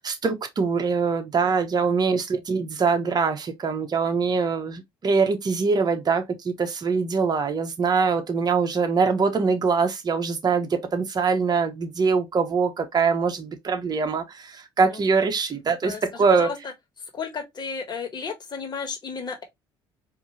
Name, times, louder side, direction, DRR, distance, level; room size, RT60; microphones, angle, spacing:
voice 1, 0.0-16.5, right 5 dB, 40° right, 1.1 m, -23 dB
voice 2, 14.9-15.2 15.8-16.7 17.1-19.4, left 5 dB, 40° left, 1.6 m, -33 dB
4.5 x 2.8 x 3.0 m
supercardioid pair, 70°, 11 cm